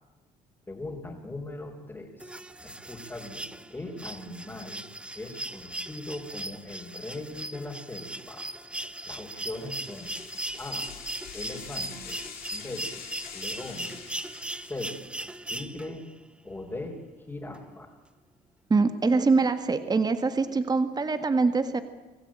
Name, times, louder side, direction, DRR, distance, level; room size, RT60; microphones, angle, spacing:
voice 1, 0.7-2.3 2.6-4.8 5.1-8.5 9.1-10.2 10.6-10.9 11.3-12.2 12.5-12.9 13.3-13.9 14.6-14.9 15.5-16.1 16.4-17.0 17.3-18.0, left 2 dB, 15° left, -2 dB, 4.3 m, -39 dB
sound 1, 2.2-16.1 17.5-17.6, right 1 dB, 5° right, 0.9 m, -38 dB
sound 2, 9.4-15.0, left 8 dB, 60° left, 4.9 m, -45 dB
voice 2, 18.7-21.8, right 4 dB, 25° right, 10 dB, 1.8 m, -24 dB
25.5 x 15.0 x 8.9 m, 1.3 s
cardioid pair, 110°, 17 cm